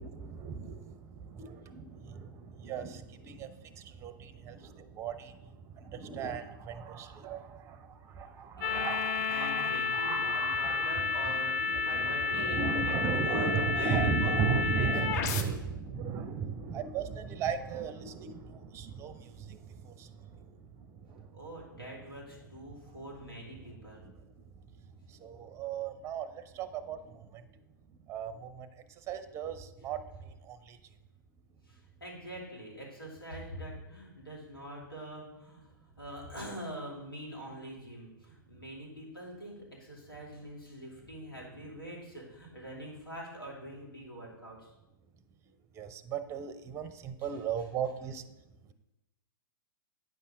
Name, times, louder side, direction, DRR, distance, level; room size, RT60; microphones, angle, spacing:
voice 1, 0.0-5.5 5.8-20.1 21.1-21.2 24.0-24.1 25.2-27.4 28.1-28.7 29.1-30.0 30.4-30.8 45.8-48.2, right 6 dB, 25° right, 13 dB, 0.6 m, -36 dB
voice 2, 8.6-15.6 21.3-24.0 31.7-35.7 36.0-44.7 47.2-47.4, right 1 dB, 90° left, -3 dB, 2.7 m, -44 dB
sound 1, 8.6-15.4, left 4 dB, 45° left, 0.8 m, -31 dB
9.1 x 5.6 x 3.7 m, 0.97 s
hypercardioid pair, 110°, 12 cm